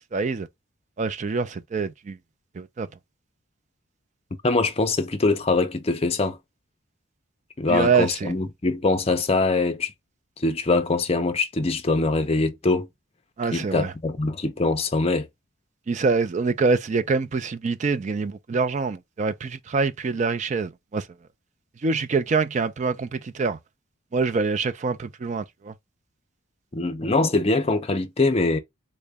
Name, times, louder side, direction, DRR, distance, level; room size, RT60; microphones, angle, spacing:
voice 1, 0.1-0.5 1.0-2.2 2.5-2.9 7.7-8.3 13.4-13.9 15.9-21.1 21.8-23.6 24.1-25.7, right 4 dB, 35° right, 0.3 m, -25 dB
voice 2, 4.4-6.4 7.6-9.9 10.4-12.9 13.5-15.3 26.7-28.6, left 3 dB, 30° left, 0.5 m, -23 dB
3.8 x 2.1 x 3.3 m
head